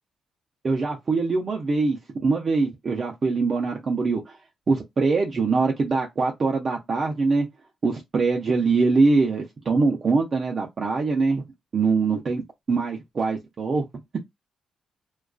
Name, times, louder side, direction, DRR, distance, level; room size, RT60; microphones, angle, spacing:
voice 1, 0.6-2.0 2.2-4.4 4.7-7.5 7.8-11.4 11.7-13.8, right 4 dB, 45° right, 0.5 m, -23 dB
2.4 x 2.3 x 2.2 m
cardioid pair, 100°, 0 cm